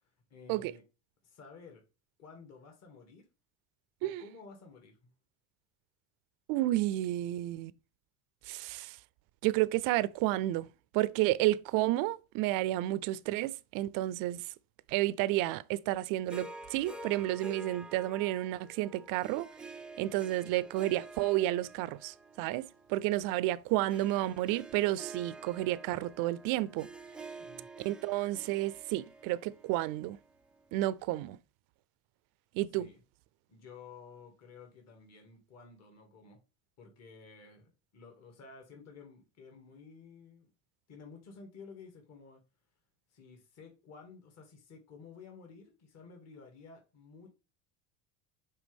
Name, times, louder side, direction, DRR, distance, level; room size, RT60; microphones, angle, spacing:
voice 1, 0.3-0.8 1.2-1.8 2.2-3.3 4.0-5.1 27.3-27.7 32.8-33.0 33.5-36.4 36.8-40.5 40.9-42.4 43.1-47.3, left 5 dB, 45° left, 2.1 m, -53 dB
voice 2, 6.5-7.7 8.5-9.0 9.4-10.7 10.9-14.4 14.9-19.5 20.0-26.9 27.8-30.2 30.7-31.4 32.5-32.9, right 16 dB, 60° right, 0.5 m, -31 dB
Harp, 16.3-30.7, right 2 dB, 5° right, 0.3 m, -49 dB
8.2 x 3.5 x 3.5 m
supercardioid pair, 110°, 37 cm